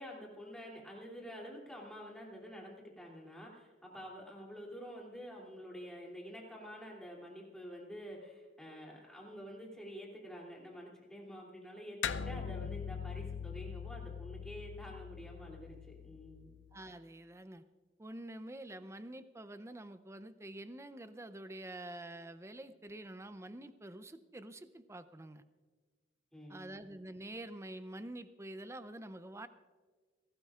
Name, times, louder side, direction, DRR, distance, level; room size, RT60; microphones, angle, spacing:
voice 1, 0.0-16.5 26.3-26.8, equal, 5° left, -3 dB, 2.8 m, -48 dB
sound 1, 12.0-16.8, left 7 dB, 85° left, 0.5 m, -42 dB
voice 2, 16.7-17.6 18.0-25.4 26.5-29.5, right 1 dB, 15° right, 11 dB, 0.5 m, -47 dB
29.0 x 12.0 x 2.4 m, 1.4 s
head